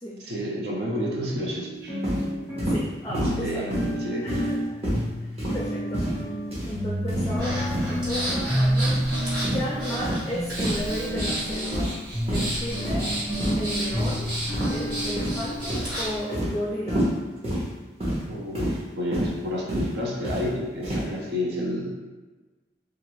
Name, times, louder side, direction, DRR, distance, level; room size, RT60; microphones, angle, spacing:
voice 1, 0.2-2.0 3.3-4.3 18.2-21.9, equal, 70° right, -2 dB, 0.5 m, -30 dB
sound 1, 0.9-17.2, equal, 20° right, 1.1 m, -30 dB
sound 2, 2.0-2.2 2.6-2.8 3.1-3.4 3.7-3.9 4.3-4.5 4.8-5.0 5.4-5.6 5.9-6.2 6.5-6.7 7.1-7.3 7.6-7.9 8.3-8.5 8.9-9.0 9.4-9.6 10.0-10.2 10.6-10.8 11.1-11.3 11.7-12.0 12.3-12.5 12.8-13.1 13.4-13.6 14.0-14.1 14.5-14.8 15.2-15.4 15.7-15.9 16.3-16.5 16.9-17.1 17.4-17.6 18.0-18.2 18.5-18.8 19.1-19.3 19.7-19.9 20.2-20.4 20.8-21.0, equal, 35° right, 0.9 m, -27 dB
voice 2, 2.7-3.7 4.2-4.6 5.2-6.1 6.7-9.2 9.5-11.9 12.3-13.2 13.6-14.4 14.7-17.1, left 1 dB, 20° left, -5 dB, 0.4 m, -34 dB
Breathing, 7.4-16.2, right 1 dB, 55° right, 1.4 m, -33 dB
2.5 x 2.4 x 3.0 m, 1.2 s
head